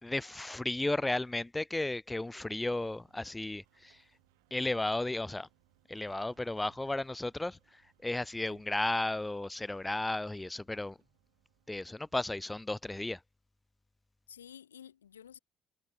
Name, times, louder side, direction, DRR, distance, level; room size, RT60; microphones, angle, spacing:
voice 1, 0.0-4.0 4.5-5.5 5.9-11.0 11.7-13.2, left 2 dB, 15° left, 1.4 m, -34 dB
sound 1, 2.5-12.9, right 26 dB, 70° right, 5.6 m, -71 dB
voice 2, 14.3-15.4, left 9 dB, 80° left, 1.9 m, -52 dB
figure-of-eight pair, 50°, 0 cm